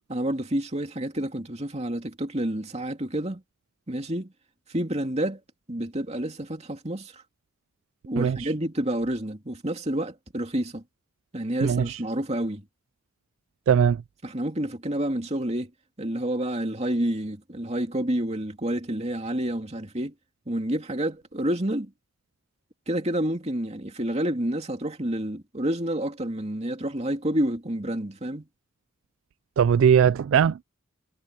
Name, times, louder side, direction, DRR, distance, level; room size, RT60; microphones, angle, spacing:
voice 1, 0.1-3.4 3.9-4.3 4.7-5.4 5.7-7.1 8.1-10.8 11.3-12.6 14.2-15.7 16.0-20.1 20.5-21.9 22.9-28.5, right 1 dB, 30° right, 2.6 m, -29 dB
voice 2, 8.2-8.5 11.6-12.0 13.7-14.0 29.6-30.6, right 7 dB, 70° right, 0.3 m, -20 dB
head